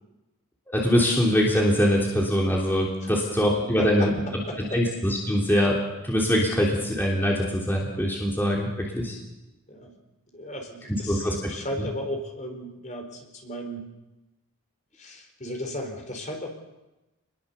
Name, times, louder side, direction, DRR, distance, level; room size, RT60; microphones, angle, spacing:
voice 1, 0.7-4.1 4.7-5.8 6.0-9.1 11.1-11.3, equal, 10° left, -3 dB, 3.4 m, -23 dB
voice 2, 3.8-4.1 4.5-4.8 9.7-9.9 10.3-13.8 15.0-16.5, equal, 35° left, 3 dB, 4.5 m, -35 dB
28.0 x 21.5 x 7.1 m, 0.99 s
head